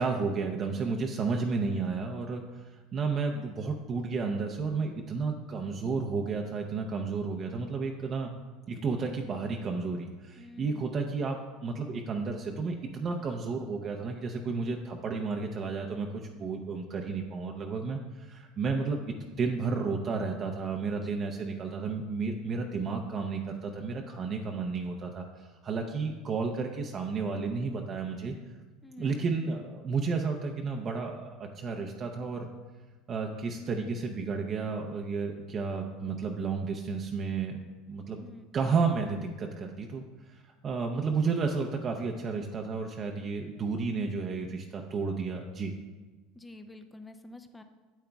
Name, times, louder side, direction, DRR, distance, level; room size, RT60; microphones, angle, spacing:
voice 1, 0.0-8.3 8.7-19.0 19.3-28.6 29.0-32.5 33.1-37.6 37.9-38.2 38.5-45.7, right 4 dB, 35° right, 3 dB, 0.6 m, -32 dB
voice 2, 0.7-1.3 10.4-10.9 21.1-21.3 28.8-29.2 38.2-38.7 46.4-47.6, left 1 dB, 10° left, 8 dB, 0.5 m, -49 dB
8.7 x 8.2 x 2.3 m, 1.3 s
supercardioid pair, 105°, 0 cm